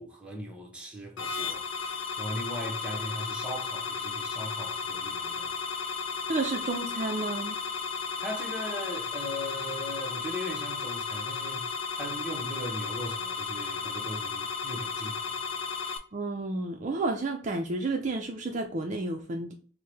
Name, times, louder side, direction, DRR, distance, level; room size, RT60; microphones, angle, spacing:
voice 1, 0.0-5.5 8.2-11.7 12.0-15.6, equal, 5° right, 0.8 m, -39 dB
sound 1, 1.2-16.0, left 5 dB, 85° left, 0.7 m, -34 dB
voice 2, 6.3-7.6 16.1-19.5, right 2 dB, 40° right, 0.4 m, -31 dB
4.5 x 2.1 x 3.3 m
head